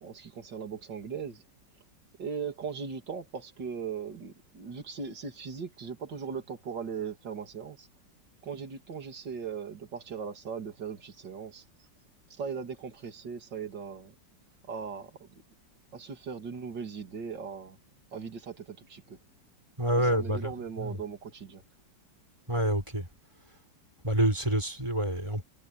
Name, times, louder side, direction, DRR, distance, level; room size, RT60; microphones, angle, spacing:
voice 1, 0.0-1.4 2.2-7.9 8.4-11.9 12.3-14.1 14.7-15.3 15.9-17.8 18.1-19.2 19.9-21.6, right 6 dB, 75° right, 3.2 m, -39 dB
voice 2, 19.8-20.5 20.8-21.0 22.5-23.1 24.0-25.4, right 1 dB, 15° right, 4.9 m, -27 dB
omnidirectional pair, 1.9 m